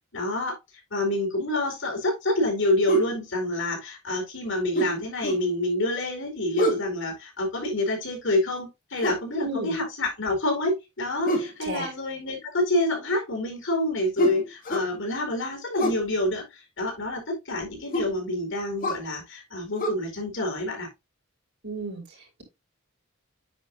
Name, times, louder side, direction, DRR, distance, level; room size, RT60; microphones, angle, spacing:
voice 1, 0.1-0.6 0.9-20.9, left 1 dB, 65° left, 4.7 m, -27 dB
sound 1, 2.9-3.1 4.8-5.5 6.6-6.9 9.0-9.3 11.3-11.6 14.2-14.9 15.8-16.1 17.9-18.2 18.8-19.1 19.8-19.9, equal, 40° left, 2.4 m, -27 dB
voice 2, 9.4-9.8 11.7-11.9 21.6-22.0, right 2 dB, 55° right, 5.5 m, -32 dB
9.6 x 5.5 x 2.7 m
head